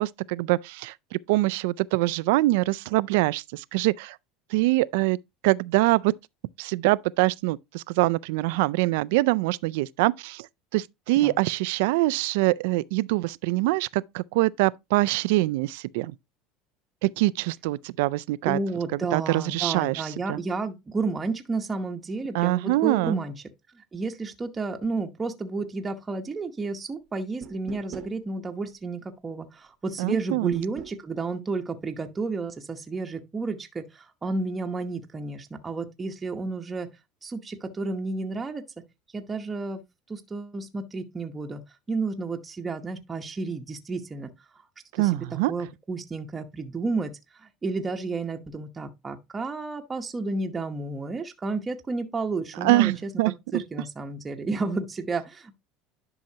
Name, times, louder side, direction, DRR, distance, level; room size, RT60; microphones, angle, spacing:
voice 1, 0.0-4.2 4.5-5.2 5.4-6.1 6.6-10.5 10.7-16.1 17.0-18.6 18.9-20.4 22.3-23.2 30.0-30.6 44.9-45.5 52.6-53.6, right 20 dB, 80° right, 0.3 m, -24 dB
voice 2, 18.5-23.3 23.7-36.9 37.2-38.6 39.1-39.8 40.1-41.6 41.9-44.3 45.0-47.1 47.6-53.1 53.5-55.6, right 3 dB, 15° right, 0.9 m, -31 dB
sound 1, 27.4-28.2 30.5-31.0, right 9 dB, 45° right, 0.9 m, -41 dB
10.5 x 5.6 x 2.8 m
cardioid pair, 145°, 0 cm